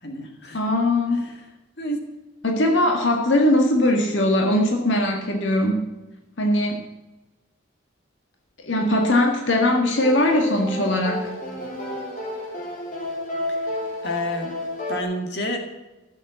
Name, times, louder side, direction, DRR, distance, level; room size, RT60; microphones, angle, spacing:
voice 1, 0.0-0.6 1.3-1.4 1.8-2.0 13.5-13.7 14.0-14.5 14.9-15.6, left 1 dB, 60° left, 3 dB, 2.3 m, -29 dB
voice 2, 0.5-1.3 2.4-5.9 6.4-6.8 8.6-11.3, left 1 dB, 85° left, 2 dB, 1.8 m, -20 dB
sound 1, 10.0-15.0, left 1 dB, 45° left, 3.2 m, -31 dB
15.5 x 7.5 x 7.0 m, 1.1 s
head